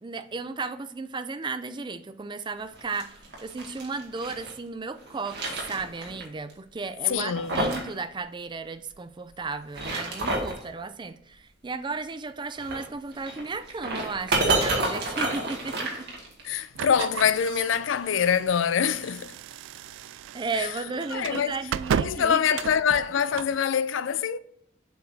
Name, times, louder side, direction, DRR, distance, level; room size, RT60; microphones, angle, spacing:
voice 1, 0.0-3.1 3.4-16.1 20.3-22.6, right 4 dB, 25° right, 0.4 m, -34 dB
sound 1, 2.7-4.5 5.0-6.2 6.5-6.6 7.1-7.9 8.2-8.3 9.5-10.6 12.5-16.6, right 2 dB, 60° right, 2.0 m, -30 dB
voice 2, 7.1-7.7 16.4-19.3 20.6-20.7 21.1-21.6 22.0-24.4, left 7 dB, 80° left, 0.4 m, -25 dB
sound 2, 16.7-23.6, right 8 dB, 85° right, 0.3 m, -35 dB
8.0 x 4.9 x 2.7 m
head